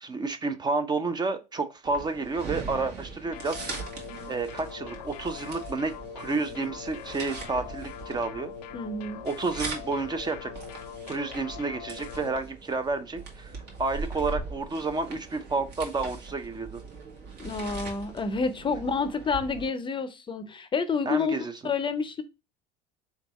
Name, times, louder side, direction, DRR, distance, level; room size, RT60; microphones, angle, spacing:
voice 1, 0.0-3.7 4.3-8.5 9.2-10.5 11.1-13.5 13.8-16.8 21.1-21.5, right 3 dB, 20° right, 0.5 m, -30 dB
sound 1, 1.8-19.7, right 4 dB, 55° right, 1.5 m, -41 dB
sound 2, 3.3-12.3, left 9 dB, 80° left, 0.5 m, -42 dB
voice 2, 8.7-9.2 17.4-22.2, left 4 dB, 25° left, 0.6 m, -29 dB
3.9 x 3.4 x 3.0 m
hypercardioid pair, 80°, 20 cm